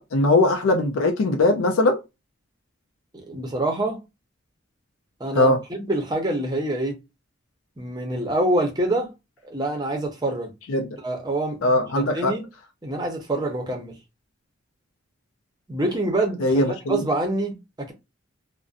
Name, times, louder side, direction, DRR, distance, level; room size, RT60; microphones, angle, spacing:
voice 1, 0.0-2.0 5.3-5.6 10.7-11.0 11.6-12.3 16.4-17.0, left 2 dB, 85° left, 0.4 m, -20 dB
voice 2, 3.1-4.0 5.2-5.5 5.8-7.0 7.8-9.1 9.4-10.5 11.0-11.6 11.9-12.4 12.8-13.9 15.7-17.9, right 1 dB, 20° right, 0.6 m, -26 dB
2.5 x 2.1 x 2.4 m
head